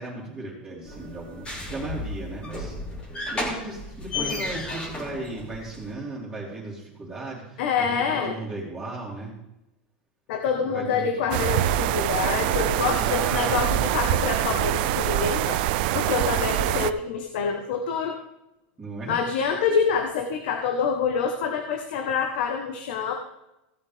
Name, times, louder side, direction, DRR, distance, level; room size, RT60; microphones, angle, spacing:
voice 1, 0.0-2.8 3.3-9.3 10.6-11.5 12.8-13.8 16.0-16.4 18.8-19.2, right 2 dB, 15° right, -9 dB, 3.0 m, -36 dB
sound 1, 0.8-5.9, left 2 dB, 15° left, 2.6 m, -33 dB
voice 2, 7.6-8.3 10.3-15.6 15.9-18.2 19.1-23.1, left 6 dB, 65° left, 5 dB, 1.2 m, -26 dB
sound 2, 11.3-16.9, right 13 dB, 60° right, 0.5 m, -24 dB
16.5 x 8.3 x 3.5 m, 0.92 s
supercardioid pair, 145°, 6 cm